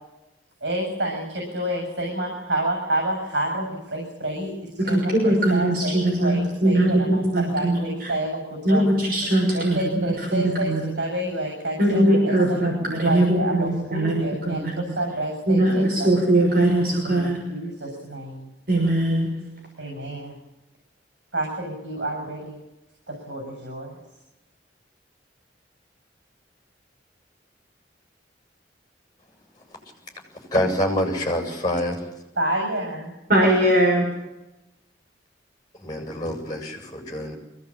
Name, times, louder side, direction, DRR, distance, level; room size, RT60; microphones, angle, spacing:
voice 1, 0.6-8.9 9.5-12.7 13.0-16.1 17.0-18.5 19.8-20.4 21.3-22.6 23.1-24.0 32.4-33.1, right 1 dB, 80° right, 1 dB, 7.5 m, -29 dB
voice 2, 4.9-8.1 8.6-10.8 11.8-14.8 15.5-17.4 18.7-19.3 33.3-34.0, right 1 dB, 55° right, -1 dB, 6.2 m, -21 dB
voice 3, 30.5-32.0 35.8-37.3, left 1 dB, 25° left, 3 dB, 7.7 m, -26 dB
23.5 x 17.5 x 8.9 m, 0.97 s
head